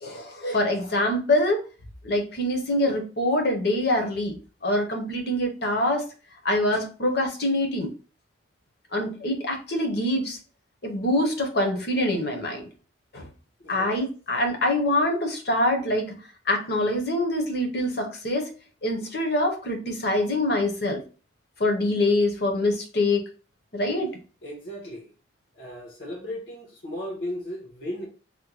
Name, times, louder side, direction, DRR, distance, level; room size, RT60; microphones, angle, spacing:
voice 1, 0.0-1.7 2.0-4.4 4.6-6.1 6.4-7.9 8.9-10.4 10.8-12.7 13.1-13.3 13.7-16.1 16.5-18.5 18.8-21.0 21.6-23.2 23.7-24.2, left 1 dB, 55° left, 0.8 m, -25 dB
voice 2, 13.6-13.9 24.4-25.1 25.5-28.1, left 1 dB, 85° left, 1.3 m, -36 dB
3.5 x 2.2 x 3.0 m
head